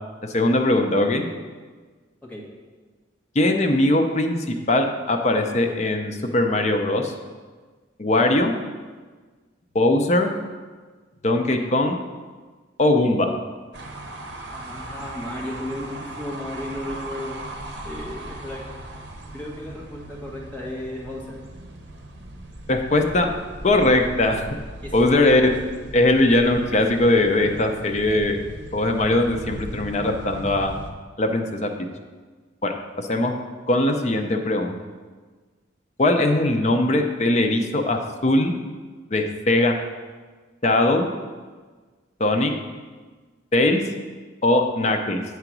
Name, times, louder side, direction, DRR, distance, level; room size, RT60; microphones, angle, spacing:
voice 1, 0.3-1.3 3.3-7.1 8.0-8.5 9.7-10.3 11.2-12.0 12.8-13.3 22.7-23.3 23.6-24.4 24.9-25.4 25.9-28.4 28.7-30.7 31.2-31.7 32.6-33.3 33.7-34.8 36.0-38.5 39.1-39.8 40.6-41.1 42.2-42.5 43.5-43.8 44.4-45.2, left 2 dB, 40° left, 4 dB, 0.6 m, -20 dB
sound 1, 13.7-30.9, right 1 dB, 65° right, 0.8 m, -38 dB
voice 2, 14.5-17.3 17.8-18.7 19.3-21.4 24.8-25.6, left 1 dB, 10° left, -4 dB, 1.5 m, -34 dB
8.0 x 3.9 x 6.0 m, 1.4 s
head